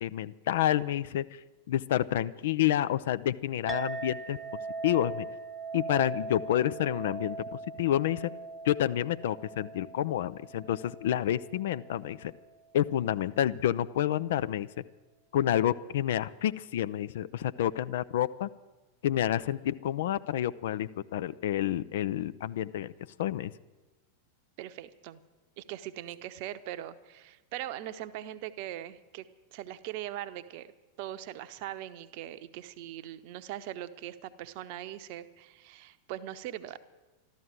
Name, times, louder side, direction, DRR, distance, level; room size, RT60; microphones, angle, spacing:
voice 1, 0.0-1.2 1.7-4.4 4.8-5.3 5.7-7.4 7.8-8.3 8.6-12.3 12.7-14.7 15.3-18.5 19.0-22.9 23.2-23.5, left 11 dB, 55° left, 15 dB, 0.5 m, -29 dB
Chink clink, 3.7-12.4, right 3 dB, 10° right, 0.6 m, -40 dB
voice 2, 24.6-25.2 25.6-29.2 29.5-30.7 31.0-36.8, right 13 dB, 45° right, 12 dB, 0.8 m, -41 dB
13.0 x 12.5 x 7.7 m, 1.2 s
figure-of-eight pair, 90°, 0 cm